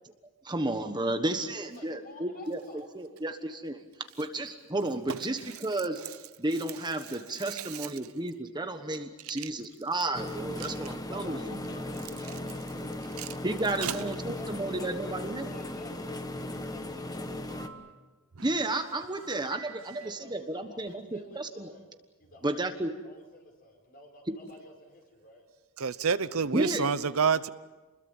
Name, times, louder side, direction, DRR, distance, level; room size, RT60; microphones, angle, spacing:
voice 1, 0.4-3.8 4.2-6.0 6.4-11.6 13.4-15.5 18.4-21.7 22.4-23.0 24.3-24.4 26.5-27.1, right 2 dB, 20° right, 7 dB, 1.3 m, -32 dB
voice 2, 1.6-2.8 11.1-13.7 14.2-17.8 19.9-21.9 22.2-22.7 23.0-25.5, left 2 dB, 45° left, 3 dB, 5.1 m, -51 dB
sound 1, 10.1-17.7, left 1 dB, 15° left, 1.4 m, -37 dB
voice 3, 25.8-27.5, right 6 dB, 70° right, 14 dB, 0.8 m, -27 dB
28.0 x 21.5 x 7.3 m, 1.2 s
head